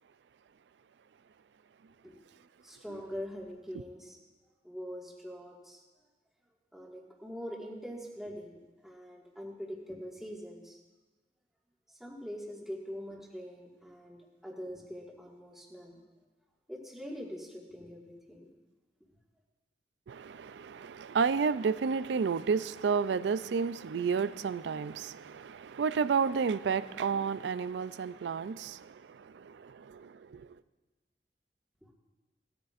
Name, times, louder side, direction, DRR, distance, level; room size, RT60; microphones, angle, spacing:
voice 1, 2.6-4.2 4.6-5.8 6.7-10.8 11.9-16.0 16.7-18.5 31.8-31.9, equal, ahead, 1.8 m, -43 dB
voice 2, 20.1-30.5, right 5 dB, 75° right, 0.4 m, -31 dB
18.0 x 13.5 x 2.5 m
head